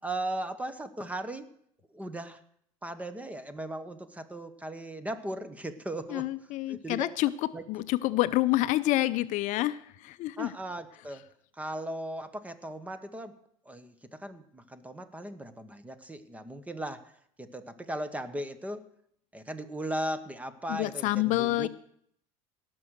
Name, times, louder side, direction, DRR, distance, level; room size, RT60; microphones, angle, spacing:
voice 1, 0.0-1.5 1.9-2.4 2.8-6.3 6.7-7.1 7.5-7.6 10.4-11.2 11.6-13.3 13.6-17.1 17.4-18.8 19.3-21.7, right 1 dB, 10° right, 12 dB, 1.1 m, -37 dB
voice 2, 6.1-7.3 7.7-10.5 20.7-21.7, left 17 dB, 55° left, 14 dB, 0.6 m, -28 dB
18.0 x 6.2 x 6.5 m, 0.68 s
supercardioid pair, 110°, 15 cm